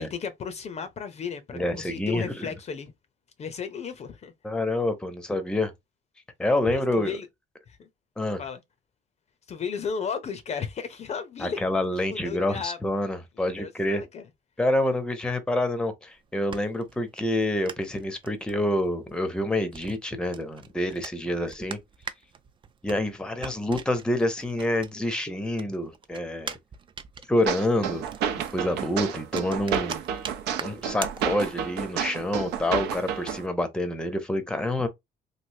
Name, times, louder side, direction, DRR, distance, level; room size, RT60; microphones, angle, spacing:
voice 1, 0.0-2.9 3.4-4.3 6.7-7.3 7.7-7.9 8.4-8.6 9.5-11.6 12.1-12.8 13.4-14.3, left 6 dB, 40° left, 0.6 m, -34 dB
voice 2, 1.5-2.5 4.4-5.7 6.4-7.2 8.2-8.4 11.4-14.0 14.6-21.8 22.8-26.6 27.3-28.0 28.5-30.0 30.6-34.9, left 1 dB, 5° left, 0.7 m, -27 dB
sound 1, 16.1-25.2 25.5-31.8, right 6 dB, 30° right, 0.4 m, -42 dB
sound 2, 27.5-33.4, right 8 dB, 85° right, 0.7 m, -30 dB
3.1 x 2.6 x 2.6 m
cardioid pair, 110°, 17 cm